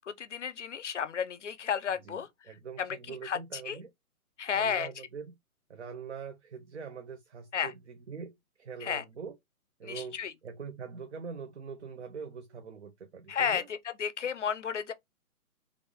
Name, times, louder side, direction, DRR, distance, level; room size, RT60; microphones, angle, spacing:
voice 1, 0.1-2.3 2.8-3.4 3.7-3.8 4.4-4.9 7.5-7.7 8.8-9.0 9.8-10.3 13.3-13.6 14.0-14.9, left 7 dB, 55° left, 0.5 m, -32 dB
voice 2, 2.1-3.9 4.5-5.3 5.7-9.4 9.8-13.7, right 5 dB, 50° right, 0.5 m, -43 dB
3.4 x 2.5 x 3.3 m
hypercardioid pair, 175°, 45 cm